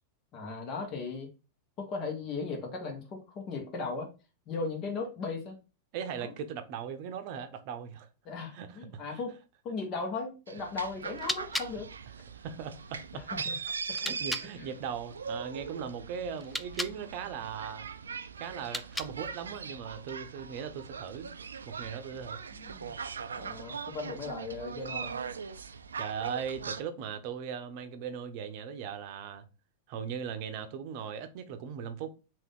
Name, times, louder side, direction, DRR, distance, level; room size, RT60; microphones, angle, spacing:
voice 1, 0.3-1.3 1.8-4.1 4.5-5.6 6.2-6.3 8.2-9.4 9.6-11.9 13.1-13.6 14.5-14.7 22.5-22.9 23.3-25.1, left 4 dB, 40° left, 1.1 m, -37 dB
voice 2, 5.9-8.1 8.5-9.2 12.4-13.2 14.0-17.9 18.4-21.3 21.7-22.4 26.0-29.4 29.9-32.1, right 7 dB, 55° right, 0.7 m, -39 dB
sound 1, 10.5-26.8, right 6 dB, 85° right, 0.3 m, -40 dB
sound 2, 11.0-14.5 16.3-17.0 18.5-19.4, left 1 dB, 5° left, 0.3 m, -39 dB
3.5 x 2.5 x 3.6 m
hypercardioid pair, 100°, 0 cm